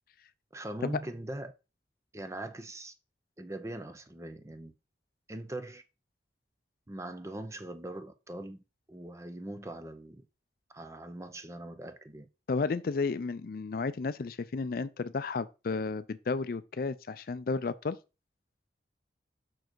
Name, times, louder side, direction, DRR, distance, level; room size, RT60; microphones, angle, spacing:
voice 1, 0.5-1.5 2.1-2.9 3.4-4.7 5.3-5.8 6.9-8.6 8.9-10.3 10.7-12.3, right 1 dB, 15° right, 0.6 m, -41 dB
voice 2, 12.5-18.0, left 4 dB, 55° left, 0.4 m, -32 dB
6.1 x 4.7 x 4.6 m
head